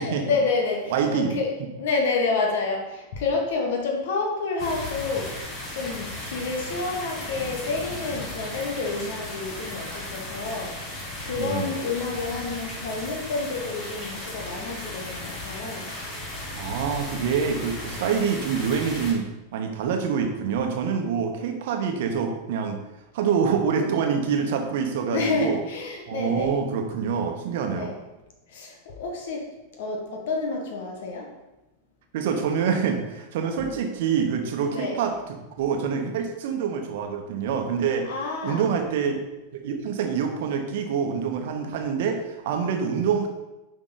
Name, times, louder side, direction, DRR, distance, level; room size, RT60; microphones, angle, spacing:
voice 1, 0.0-5.3 5.7-15.9 25.1-26.5 27.6-27.9 28.5-29.4 29.8-31.3 33.6-33.9 34.7-35.0 38.0-38.7, left 4 dB, 55° left, 1 dB, 1.5 m, -29 dB
voice 2, 0.9-1.4 11.3-11.8 16.5-19.3 19.5-22.8 23.1-25.6 26.1-27.9 32.1-35.1 35.6-38.1 38.4-39.2 39.5-43.3, right 6 dB, 55° right, 4 dB, 1.2 m, -26 dB
sound 1, 4.6-19.1, left 1 dB, 30° left, 2.0 m, -36 dB
9.9 x 5.1 x 4.0 m, 1.0 s
figure-of-eight pair, 90°, 0 cm